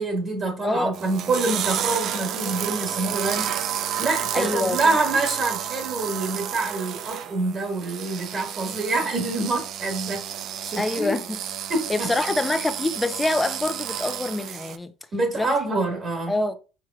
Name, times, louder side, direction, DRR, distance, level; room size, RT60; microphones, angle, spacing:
voice 1, 0.0-10.2 10.6-11.1 11.7-12.1 15.1-16.3, right 2 dB, 40° right, 1.9 m, -26 dB
voice 2, 0.6-1.0 4.3-5.0 10.8-11.4 11.9-14.9 15.3-15.5 16.3-16.6, left 2 dB, 15° left, 0.7 m, -25 dB
sound 1, 0.9-14.8, right 10 dB, 60° right, 0.5 m, -31 dB
4.8 x 4.4 x 2.4 m
supercardioid pair, 85°, 0 cm